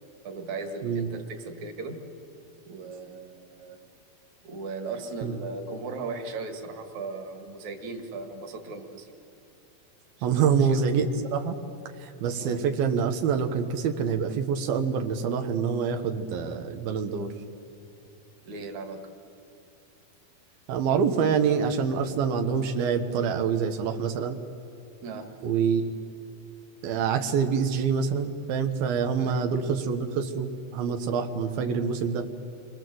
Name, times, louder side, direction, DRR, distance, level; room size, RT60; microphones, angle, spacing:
voice 1, 0.2-2.0 2.7-3.8 4.4-9.1 10.2-10.8 12.4-12.6 18.4-19.1 25.0-25.3 29.2-29.6, right 3 dB, 55° right, 4 dB, 3.1 m, -37 dB
voice 2, 10.2-11.5 12.0-17.3 20.7-24.4 25.4-25.9 26.8-32.2, right 6 dB, 85° right, 5 dB, 3.0 m, -26 dB
29.5 x 23.5 x 7.7 m, 2.7 s
omnidirectional pair, 4.2 m